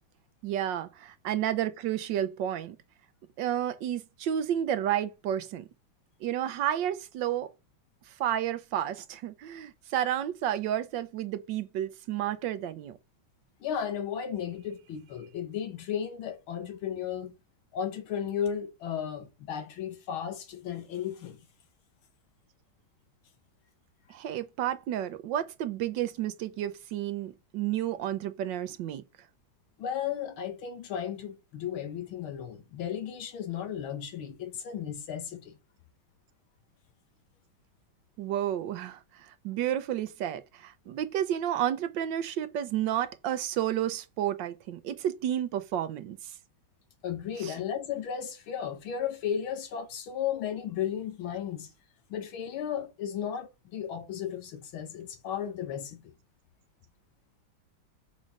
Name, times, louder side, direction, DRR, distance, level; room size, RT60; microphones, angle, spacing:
voice 1, 0.4-2.8 3.4-5.7 6.2-7.5 8.1-13.0 24.1-29.0 38.2-46.3 47.4-47.5, right 11 dB, 70° right, 1.2 m, -31 dB
voice 2, 13.6-17.4 17.7-21.4 29.8-35.6 47.0-51.7 52.1-56.1, left 9 dB, 90° left, 2.0 m, -34 dB
6.3 x 4.2 x 5.2 m
omnidirectional pair, 2.2 m